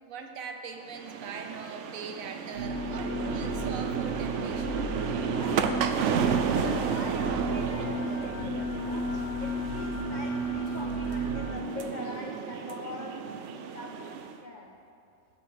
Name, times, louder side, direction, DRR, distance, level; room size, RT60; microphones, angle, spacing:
voice 1, 0.0-4.8, right 5 dB, 90° right, 4 dB, 1.2 m, -41 dB
sound 1, 0.9-14.4, right 6 dB, 70° right, 0.8 m, -33 dB
sound 2, 2.5-11.5, right 1 dB, 25° right, 2.1 m, -33 dB
voice 2, 5.1-6.2 6.5-14.0 14.4-14.7, left 2 dB, 55° left, 1 dB, 0.5 m, -43 dB
9.2 x 5.8 x 6.3 m, 2.5 s
omnidirectional pair, 1.4 m